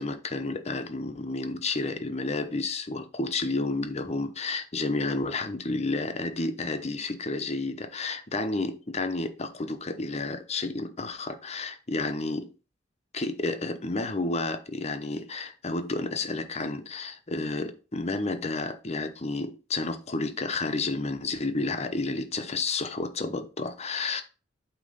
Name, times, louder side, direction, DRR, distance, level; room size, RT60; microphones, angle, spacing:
voice 1, 0.0-12.5 13.1-24.2, left 3 dB, 35° left, 0.9 m, -31 dB
8.5 x 3.0 x 5.5 m
head